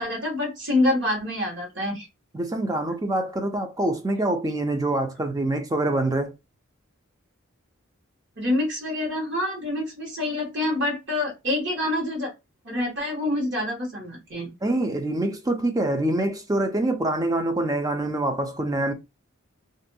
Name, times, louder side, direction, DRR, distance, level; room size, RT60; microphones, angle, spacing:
voice 1, 0.0-2.1 8.4-12.3 12.6-14.5, left 1 dB, 55° right, 1.2 m, -26 dB
voice 2, 2.3-6.3 14.6-18.9, right 1 dB, 15° right, 0.4 m, -25 dB
2.6 x 2.2 x 2.6 m
head